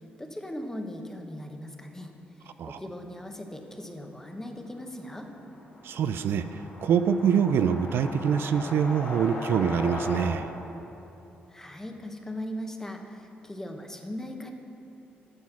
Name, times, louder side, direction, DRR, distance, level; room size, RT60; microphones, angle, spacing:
voice 1, 0.2-2.1 2.4-5.3 11.5-14.5, left 1 dB, 10° left, 4 dB, 1.1 m, -39 dB
sound 1, 2.8-2.9 3.1-3.2 3.5-10.3, left 1 dB, 55° left, 2.2 m, -40 dB
voice 2, 5.8-10.5, right 7 dB, 70° right, 10 dB, 0.3 m, -25 dB
9.8 x 6.3 x 6.0 m, 3.0 s
supercardioid pair, 65°, 4 cm